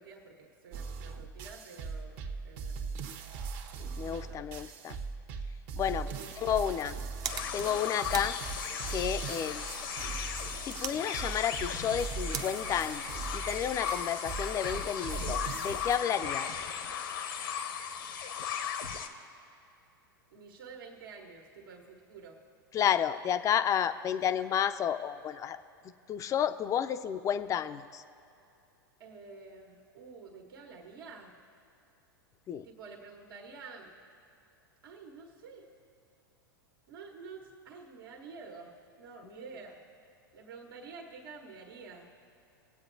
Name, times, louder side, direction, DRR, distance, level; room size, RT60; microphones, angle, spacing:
voice 1, 0.0-3.1 4.0-4.5 6.1-6.7 9.2-9.7 20.3-22.4 29.0-31.4 32.6-33.9 34.8-35.7 36.9-39.8 40.3-42.1, right 4 dB, 75° right, 0 dB, 1.5 m, -49 dB
sound 1, 0.7-16.0, right 5 dB, 50° right, 1.1 m, -40 dB
voice 2, 4.0-5.0 5.8-6.1 6.4-6.9 7.5-8.4 8.9-9.6 10.6-16.5 22.7-25.6 26.1-28.0 32.5-32.6 39.2-39.4, left 9 dB, 25° left, 11 dB, 0.5 m, -31 dB
sound 2, 6.5-13.8, right 8 dB, 30° right, 0.6 m, -45 dB
sound 3, 7.2-19.1, left 8 dB, 70° left, 1.0 m, -37 dB
21.5 x 8.3 x 2.7 m, 2.6 s
hypercardioid pair, 100°, 12 cm